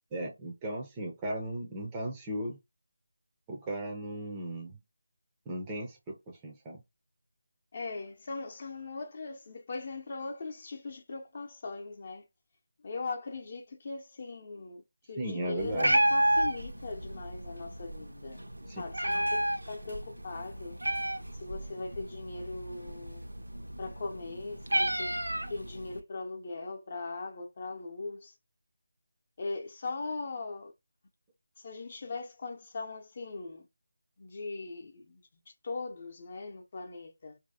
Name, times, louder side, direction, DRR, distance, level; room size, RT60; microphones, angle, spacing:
voice 1, 0.1-2.6 3.5-4.8 5.5-6.8 15.2-15.9 18.7-18.8, right 1 dB, 15° right, 0.6 m, -36 dB
voice 2, 7.7-12.3 12.8-14.8 15.1-18.4 18.8-20.8 21.3-23.3 23.8-25.2 25.5-28.4 29.4-30.7 31.6-33.7 34.2-37.4, left 3 dB, 35° left, 0.8 m, -40 dB
Meow, 15.6-26.0, right 1 dB, 80° right, 0.8 m, -32 dB
4.6 x 2.7 x 2.7 m
figure-of-eight pair, 160°, 0 cm